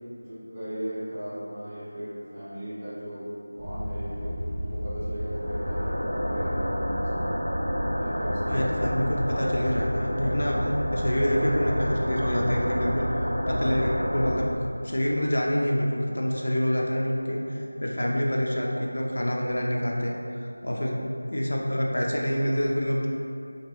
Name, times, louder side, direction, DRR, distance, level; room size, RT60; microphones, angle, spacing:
voice 1, 0.2-7.3 7.9-8.7 17.7-18.0 20.7-20.9, equal, 15° right, -14 dB, 0.9 m, -37 dB
sound 1, 3.6-14.3, equal, 45° right, 1.0 m, -29 dB
voice 2, 8.5-13.1 13.5-14.5 14.8-23.1, equal, 60° left, -2 dB, 0.4 m, -27 dB
3.0 x 2.9 x 2.8 m, 2.6 s
figure-of-eight pair, 170°, 0 cm